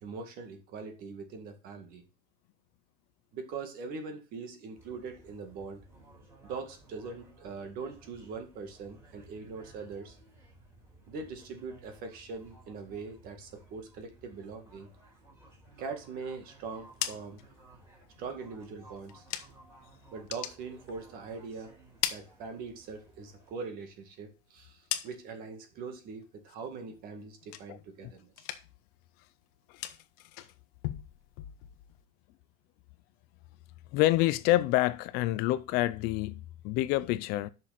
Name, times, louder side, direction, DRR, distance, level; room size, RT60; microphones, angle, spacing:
voice 1, 0.0-2.0 3.3-6.0 6.4-10.2 11.1-14.9 15.8-17.4 18.2-19.2 20.1-21.7 22.1-28.5, right 4 dB, 45° right, 2.1 m, -42 dB
sound 1, 4.8-23.5, right 2 dB, 15° right, 4.5 m, -57 dB
sound 2, 16.7-19.8 20.1-21.4 21.7-23.0 23.4-25.5 25.9-26.4 26.7-28.0 28.3-28.9 29.2-32.0, left 13 dB, 70° left, 1.2 m, -41 dB
voice 2, 27.7-28.1 29.7-29.8 33.9-37.5, left 16 dB, 50° left, 0.5 m, -28 dB
10.0 x 6.2 x 4.1 m
supercardioid pair, 150°, 20 cm